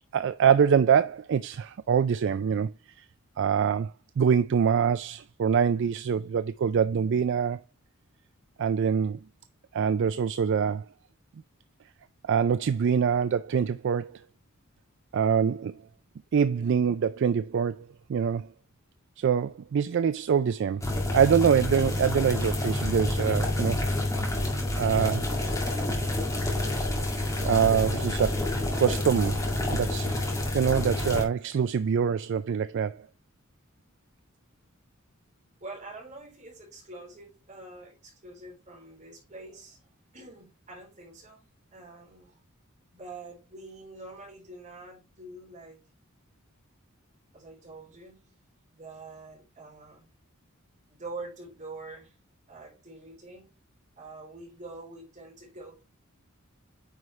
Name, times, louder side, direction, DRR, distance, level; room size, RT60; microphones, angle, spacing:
voice 1, 0.1-3.1 3.4-7.6 8.6-9.2 9.7-10.9 12.2-14.2 15.1-15.8 16.3-18.5 19.2-20.9 21.1-23.8 24.2-24.3 24.8-25.3 27.4-30.2 30.5-33.1, right 7 dB, 60° right, 0.3 m, -25 dB
sound 1, 20.8-31.2, left 1 dB, 15° left, 2.2 m, -28 dB
voice 2, 35.6-39.8 40.1-41.4 41.7-42.3 42.9-45.8 47.3-48.2 48.7-50.1 50.9-52.1 52.5-53.5 54.0-55.8, right 2 dB, 35° right, 4.0 m, -45 dB
9.3 x 4.9 x 3.1 m
head